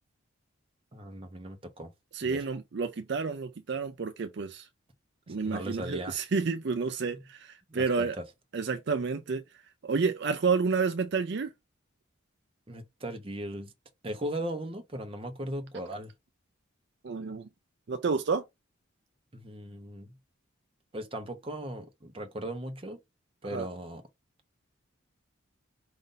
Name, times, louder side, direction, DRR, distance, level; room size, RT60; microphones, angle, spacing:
voice 1, 0.9-1.9 2.2-2.5 5.3-6.2 7.7-8.2 12.7-13.7 14.0-16.1 19.3-20.1 20.9-23.0 23.4-24.0, right 1 dB, 25° right, 0.8 m, -38 dB
voice 2, 2.1-4.7 5.3-8.2 8.5-9.4 9.8-11.5 17.0-17.5 17.9-18.4 23.5-23.7, right 5 dB, 55° right, 0.5 m, -30 dB
5.2 x 2.6 x 3.8 m
head